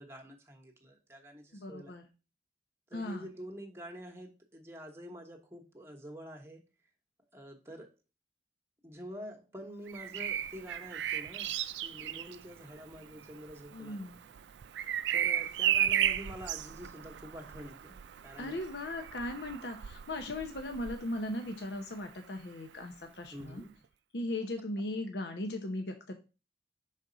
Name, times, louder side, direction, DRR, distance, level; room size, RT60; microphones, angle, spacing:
voice 1, 0.0-1.9 2.9-6.6 7.3-7.9 8.8-11.5 11.8-14.1 15.1-18.6 23.3-23.8, equal, 15° right, 3 dB, 1.1 m, -47 dB
voice 2, 1.5-2.1 2.9-3.3 13.7-14.2 18.4-23.6 24.1-26.1, left 1 dB, 75° left, 5 dB, 0.8 m, -38 dB
Bird vocalization bird call bird song, 9.9-21.7 23.4-23.6, right 10 dB, 85° right, 0.4 m, -35 dB
6.2 x 4.1 x 3.8 m, 0.31 s
head